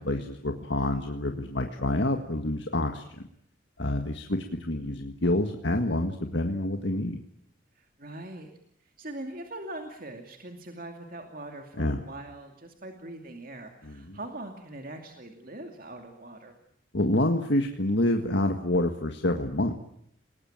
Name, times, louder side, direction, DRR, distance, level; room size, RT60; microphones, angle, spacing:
voice 1, 0.0-3.0 3.8-7.2 11.8-12.0 13.8-14.2 16.9-19.8, left 1 dB, 60° left, 5 dB, 1.7 m, -27 dB
voice 2, 7.7-8.5 9.0-16.5, right 1 dB, 45° right, 4 dB, 2.5 m, -42 dB
29.5 x 19.5 x 8.9 m, 0.71 s
head